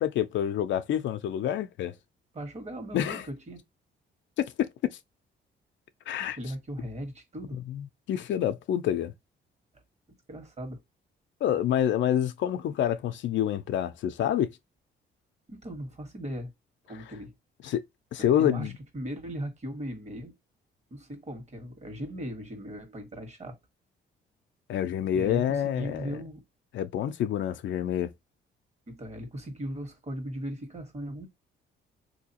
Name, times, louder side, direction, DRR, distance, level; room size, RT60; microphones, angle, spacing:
voice 1, 0.0-1.9 2.9-3.2 4.4-4.7 6.1-6.4 7.7-9.1 11.4-14.5 17.6-17.8 18.1-18.7 24.7-26.2 26.7-28.1, left 10 dB, 70° left, 0.5 m, -27 dB
voice 2, 2.3-3.6 6.2-7.6 10.3-10.8 15.5-16.5 16.9-17.3 18.2-20.3 20.9-23.6 25.1-26.4 28.9-31.3, equal, 35° right, 1.5 m, -38 dB
3.8 x 2.7 x 2.8 m
cardioid pair, 90°, 20 cm